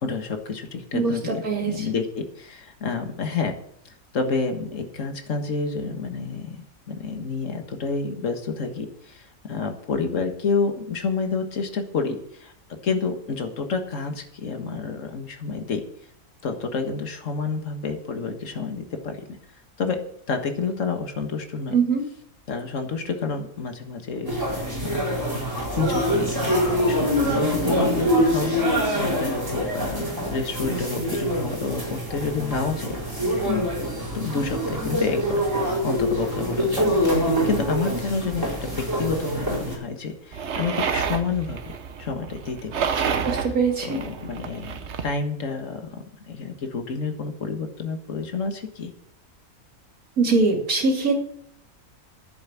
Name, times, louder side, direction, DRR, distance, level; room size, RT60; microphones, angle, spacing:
voice 1, 0.0-3.5 3.9-15.8 16.4-19.4 19.8-20.0 20.3-21.8 22.5-25.0 25.8-26.6 26.9-33.0 33.5-33.7 34.1-41.6 42.0-43.3 43.8-48.9, left 4 dB, 55° left, 5 dB, 1.9 m, -29 dB
voice 2, 0.9-1.9 21.7-22.0 43.2-44.0 50.2-51.2, right 4 dB, 70° right, 2 dB, 3.1 m, -22 dB
sound 1, 24.3-39.7, equal, 15° right, 4.2 m, -25 dB
sound 2, 40.3-45.1, right 6 dB, 55° right, 1.1 m, -29 dB
10.5 x 8.1 x 7.4 m, 0.69 s
omnidirectional pair, 1.6 m